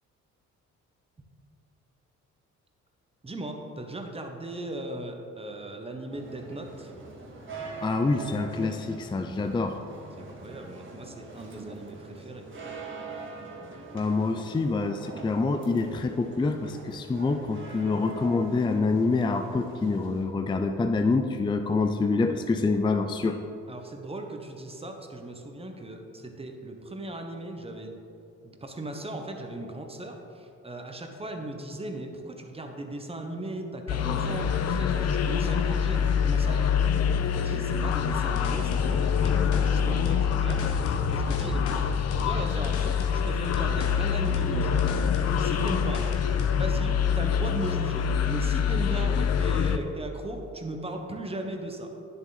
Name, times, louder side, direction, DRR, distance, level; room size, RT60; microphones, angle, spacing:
voice 1, 3.2-6.9 10.2-12.5 23.7-27.9 28.4-41.8 42.2-44.9 45.4-46.1 46.6-51.9, right 1 dB, 20° right, 3 dB, 1.1 m, -37 dB
sound 1, 6.1-20.2, right 3 dB, 40° right, 2.0 m, -43 dB
voice 2, 7.8-9.8 13.9-23.4, left 3 dB, 15° left, 6 dB, 0.4 m, -26 dB
sound 2, 33.9-49.8, left 7 dB, 55° left, 0.7 m, -25 dB
sound 3, 37.9-46.6, left 5 dB, 75° left, 1.2 m, -39 dB
10.0 x 7.4 x 4.1 m, 2.8 s
cardioid pair, 90°, 30 cm